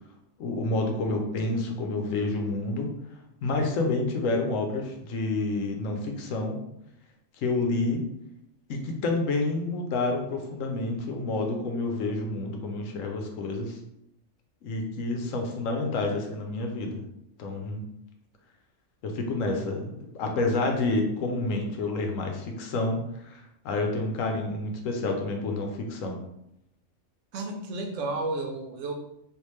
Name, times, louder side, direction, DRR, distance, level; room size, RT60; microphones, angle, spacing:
voice 1, 0.4-2.9 3.4-6.6 7.4-8.0 8.7-13.8 14.6-17.0 17.4-17.8 19.0-23.0 23.2-26.2, left 2 dB, 85° left, 3 dB, 1.1 m, -29 dB
voice 2, 27.3-28.9, right 2 dB, 75° right, 3 dB, 1.0 m, -32 dB
3.5 x 2.4 x 3.1 m, 0.78 s
omnidirectional pair, 1.3 m